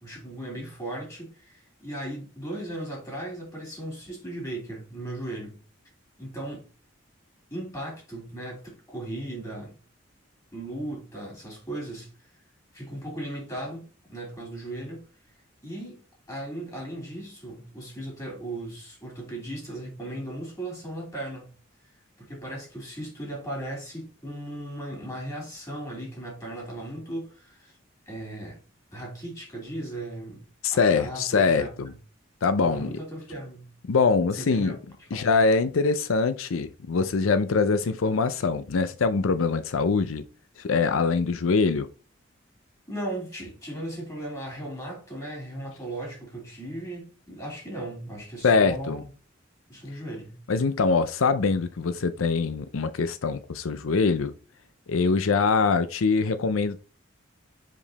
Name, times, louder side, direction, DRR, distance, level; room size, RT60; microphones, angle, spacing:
voice 1, 0.0-5.6 6.2-6.6 7.5-9.7 10.5-12.1 12.7-15.0 15.6-21.5 22.2-27.7 28.1-28.6 28.9-30.4 30.7-31.7 32.6-33.7 34.3-35.3 42.9-49.1 49.7-50.4, right 1 dB, 15° left, 3.4 m, -37 dB
voice 2, 30.6-31.9 32.4-32.9 33.8-34.8 35.1-40.3 40.6-41.9 48.4-49.0 50.5-54.3 54.9-56.8, left 4 dB, 85° left, 0.5 m, -23 dB
5.3 x 5.1 x 4.0 m
head